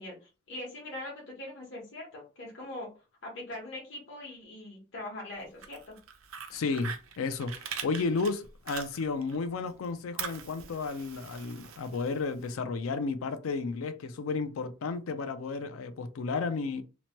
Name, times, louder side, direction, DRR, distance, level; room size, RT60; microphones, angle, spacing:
voice 1, 0.0-2.9 3.2-6.0, left 1 dB, 60° left, 1.0 m, -42 dB
Fire, 5.4-9.4 9.7-12.5, right 7 dB, 85° right, 0.5 m, -42 dB
voice 2, 6.5-16.8, left 4 dB, 85° left, 0.4 m, -33 dB
2.9 x 2.1 x 2.9 m
head